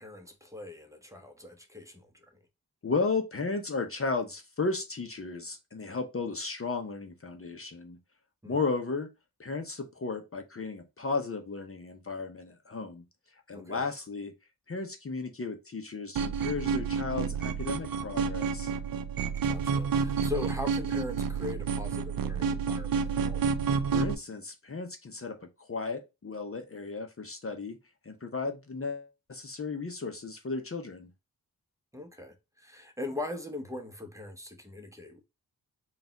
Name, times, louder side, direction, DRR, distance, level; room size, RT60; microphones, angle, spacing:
voice 1, 0.0-2.2 8.4-8.6 13.5-13.8 19.4-23.4 31.9-35.2, left 2 dB, 10° right, 0.9 m, -40 dB
voice 2, 2.8-8.0 8.4-9.1 9.4-13.0 13.5-14.3 14.7-18.7 23.9-27.8 28.0-31.1, left 4 dB, 35° left, 0.7 m, -34 dB
sound 1, 16.2-24.1, right 6 dB, 65° right, 0.5 m, -30 dB
3.9 x 2.4 x 3.9 m
cardioid pair, 60°, 37 cm